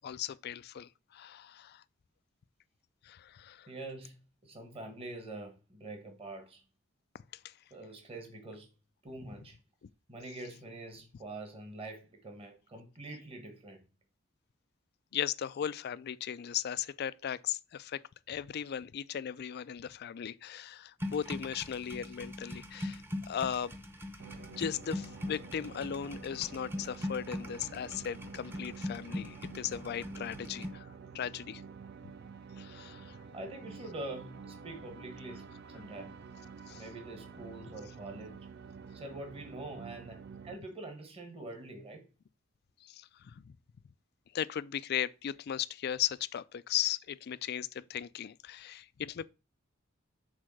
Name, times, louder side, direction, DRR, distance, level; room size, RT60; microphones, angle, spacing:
voice 1, 0.0-1.8 3.0-3.7 7.4-7.5 15.1-18.0 18.3-23.7 24.6-31.6 32.6-33.2 36.7-36.8 42.8-43.5 44.3-49.3, left 9 dB, 55° left, 0.4 m, -37 dB
voice 2, 3.7-6.6 7.7-8.7 9.0-9.6 10.1-13.8 33.3-36.2 36.7-38.4 38.9-42.0, right 2 dB, 30° right, 1.3 m, -45 dB
sound 1, 21.0-30.7, left 1 dB, 10° right, 0.8 m, -41 dB
sound 2, 24.2-40.5, right 5 dB, 55° right, 0.5 m, -49 dB
6.3 x 3.7 x 6.2 m
head